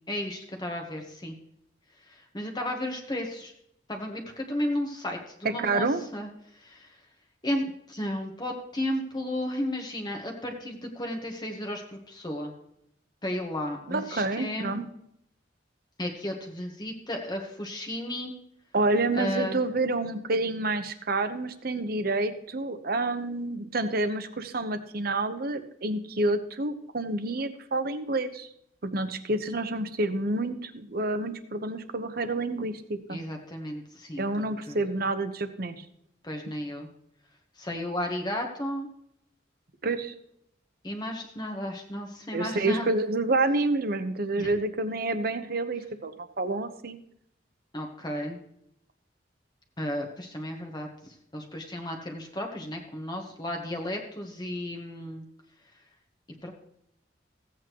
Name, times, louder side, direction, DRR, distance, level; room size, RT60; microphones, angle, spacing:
voice 1, 0.1-1.3 2.0-3.5 3.9-7.0 7.4-12.5 13.2-14.8 16.0-18.3 19.1-19.6 33.1-34.8 36.2-36.9 37.6-38.9 40.8-42.9 44.4-44.5 47.7-48.4 49.8-55.2 56.4-56.5, left 1 dB, 25° left, 2 dB, 1.2 m, -34 dB
voice 2, 5.6-6.0 13.9-14.8 18.7-28.5 28.8-33.2 34.2-35.8 39.8-40.1 42.3-47.0, right 2 dB, 55° right, 9 dB, 0.9 m, -28 dB
15.5 x 8.6 x 3.0 m, 0.75 s
head